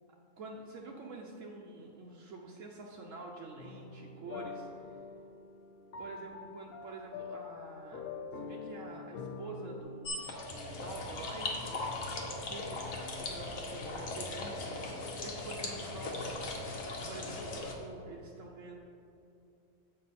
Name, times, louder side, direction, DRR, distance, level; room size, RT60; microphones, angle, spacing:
voice 1, 0.4-5.0 6.0-8.0 8.3-12.0 12.4-16.4 17.1-18.8, right 3 dB, 70° right, -1 dB, 1.0 m, -47 dB
sound 1, 3.6-9.8, left 5 dB, 55° left, 0.7 m, -45 dB
sound 2, 10.0-17.7, left 2 dB, 75° left, 1.3 m, -39 dB
7.7 x 5.5 x 4.1 m, 2.7 s
omnidirectional pair, 1.4 m